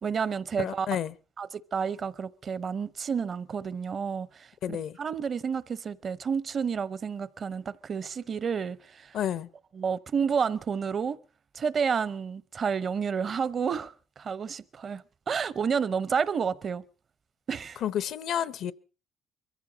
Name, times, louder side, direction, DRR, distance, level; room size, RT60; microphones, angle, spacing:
voice 1, 0.0-0.9 1.4-9.2 9.7-11.2 11.5-16.8 17.5-17.8, right 6 dB, 45° right, 0.8 m, -30 dB
voice 2, 0.6-1.1 4.6-4.9 9.1-9.5 17.8-18.7, left 10 dB, 65° left, 0.7 m, -30 dB
23.0 x 15.0 x 4.0 m
cardioid pair, 85°, 0 cm